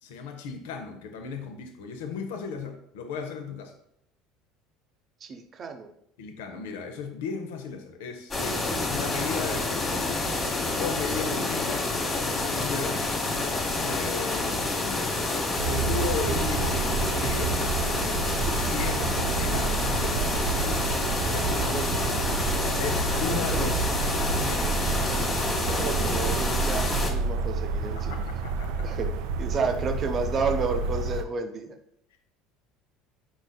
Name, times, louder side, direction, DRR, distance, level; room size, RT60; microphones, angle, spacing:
voice 1, 0.0-3.7 6.2-10.1 10.7-12.0 12.4-13.1 13.8-15.1 15.7-17.6 18.7-20.2 20.6-21.9 22.8-23.7 24.4-24.8 27.8-29.0 29.6-29.7, left 5 dB, 85° left, 5 dB, 0.6 m, -35 dB
voice 2, 5.2-5.9 21.7-21.8 23.3-23.7 25.1-25.2 25.6-28.2 28.8-29.1 29.4-31.7, right 4 dB, 40° right, 5 dB, 0.6 m, -31 dB
sound 1, 8.3-27.1, left 2 dB, 30° left, 1.1 m, -28 dB
sound 2, 15.6-31.2, right 4 dB, 75° right, 0.3 m, -29 dB
4.8 x 4.0 x 2.2 m, 0.73 s
supercardioid pair, 85°, 0 cm